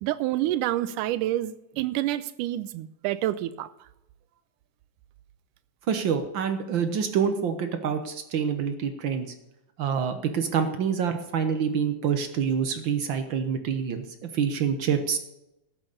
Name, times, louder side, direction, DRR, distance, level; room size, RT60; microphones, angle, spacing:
voice 1, 0.0-3.7, right 14 dB, 90° right, 15 dB, 2.2 m, -28 dB
voice 2, 5.9-9.3 9.8-14.0 14.3-15.2, right 7 dB, 70° right, 7 dB, 1.1 m, -26 dB
13.0 x 9.0 x 6.7 m, 0.90 s
omnidirectional pair, 3.6 m